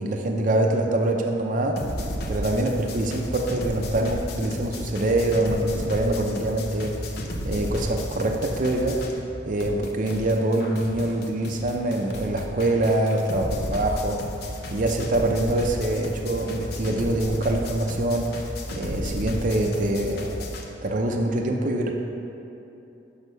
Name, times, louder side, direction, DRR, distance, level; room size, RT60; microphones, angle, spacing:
voice 1, 0.0-1.8 2.3-7.0 7.4-9.0 9.5-20.3 20.8-21.9, right 1 dB, 45° right, 2 dB, 0.5 m, -25 dB
sound 1, 1.8-9.3 9.6-20.6, left 1 dB, 55° left, 0.7 m, -33 dB
6.2 x 5.5 x 5.4 m, 2.8 s
head